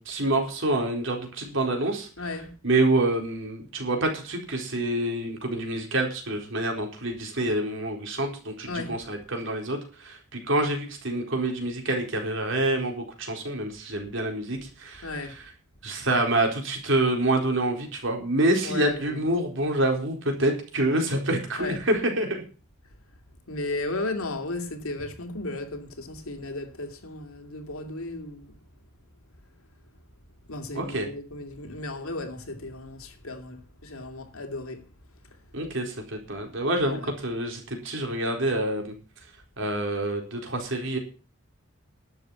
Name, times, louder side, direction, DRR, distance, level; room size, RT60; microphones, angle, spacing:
voice 1, 0.0-2.1 2.6-15.1 15.8-22.4 30.7-31.1 35.5-38.9 39.6-41.0, right 1 dB, 60° right, 4.2 m, -27 dB
voice 2, 2.2-2.5 8.7-9.0 15.0-15.4 18.6-19.2 21.6-21.8 23.5-28.6 30.5-34.9 36.8-37.1, left 2 dB, 85° left, 2.6 m, -35 dB
12.0 x 7.5 x 8.7 m
head